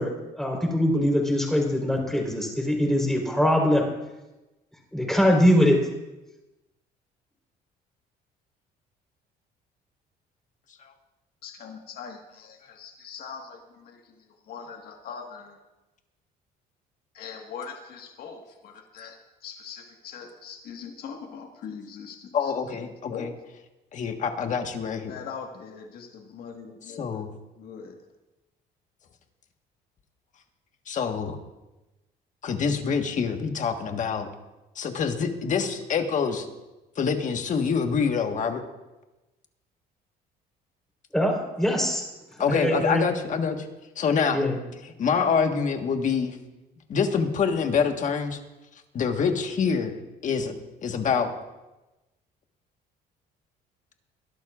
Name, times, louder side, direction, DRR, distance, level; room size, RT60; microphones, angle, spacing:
voice 1, 0.0-3.9 4.9-5.8 41.1-42.0 42.3-43.0 44.3-44.6, equal, 5° left, 0 dB, 4.0 m, -23 dB
voice 2, 11.4-15.6 17.1-22.5 22.8-23.3 25.1-27.2 27.6-28.0, left 6 dB, 65° left, 2 dB, 1.7 m, -41 dB
voice 3, 22.3-23.3 23.9-25.1 27.0-27.3 30.9-31.4 32.4-34.3 34.7-36.5 37.0-38.6 42.4-43.7 44.0-44.4 45.0-46.4 46.9-48.4 48.9-49.9 50.2-50.6 50.8-51.3, left 6 dB, 50° left, 5 dB, 1.5 m, -26 dB
22.5 x 12.0 x 2.5 m, 1.0 s
cardioid pair, 110°, 17 cm